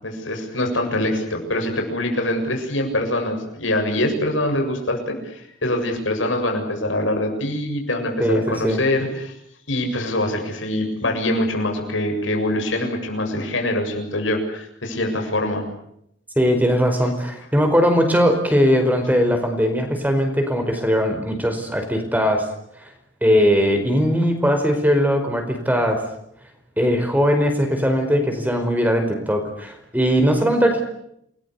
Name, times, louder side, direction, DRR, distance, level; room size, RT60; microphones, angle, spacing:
voice 1, 0.0-9.3 9.7-15.6 17.0-17.1, left 1 dB, 90° left, 3 dB, 7.5 m, -24 dB
voice 2, 8.2-8.8 16.4-22.5 23.2-26.0 26.8-30.8, equal, 10° right, 5 dB, 5.0 m, -19 dB
29.5 x 21.0 x 8.5 m, 0.75 s
head